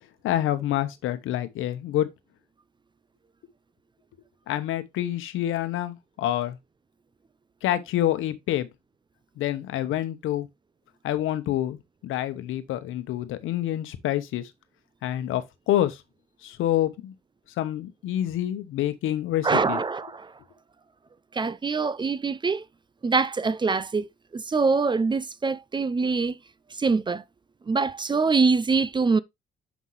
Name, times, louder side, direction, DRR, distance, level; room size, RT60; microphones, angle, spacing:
voice 1, 0.2-2.1 4.5-6.6 7.6-8.7 9.4-10.5 11.0-14.5 15.0-16.0 16.4-17.1 17.6-19.8, left 12 dB, 85° left, 1.0 m, -27 dB
voice 2, 19.4-20.3 21.3-22.6 23.0-24.1 24.3-26.4 26.8-27.2 27.7-29.2, right 4 dB, 25° right, 0.5 m, -24 dB
7.2 x 5.6 x 3.1 m
cardioid pair, 90°, 20 cm